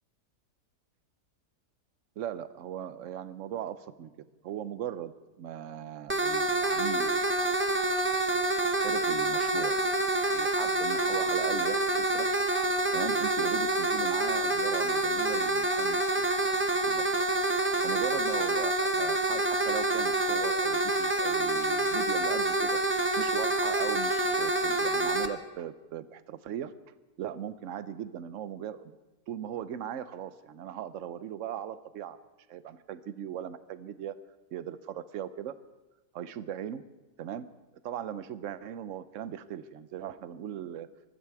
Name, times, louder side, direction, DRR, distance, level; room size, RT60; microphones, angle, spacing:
voice 1, 2.2-4.1 4.4-5.1 5.4-7.2 8.8-9.7 10.3-12.3 12.9-17.2 17.8-22.8 23.2-26.7 27.2-29.0 29.3-32.2 32.5-34.1 34.5-35.6 36.1-36.8 37.2-37.5 37.8-40.9, right 10 dB, 60° right, 14 dB, 1.0 m, -38 dB
sound 1, 6.1-25.3, right 2 dB, 20° right, 0.3 m, -27 dB
20.5 x 14.0 x 4.7 m, 1.1 s
omnidirectional pair, 1.7 m